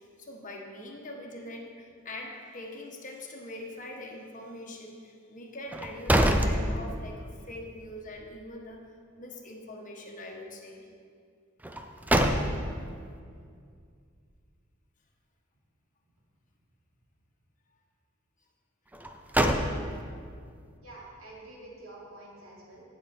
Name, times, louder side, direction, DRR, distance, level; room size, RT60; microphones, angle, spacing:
voice 1, 0.0-8.8 9.2-10.9, left 1 dB, 40° left, 0 dB, 1.4 m, -43 dB
sound 1, 5.7-7.3 7.7-7.8 11.6-12.9 18.9-20.2, right 1 dB, 10° right, 0.5 m, -26 dB
voice 2, 20.8-22.8, right 2 dB, 75° right, -5 dB, 3.0 m, -48 dB
17.5 x 6.5 x 4.3 m, 2.2 s
head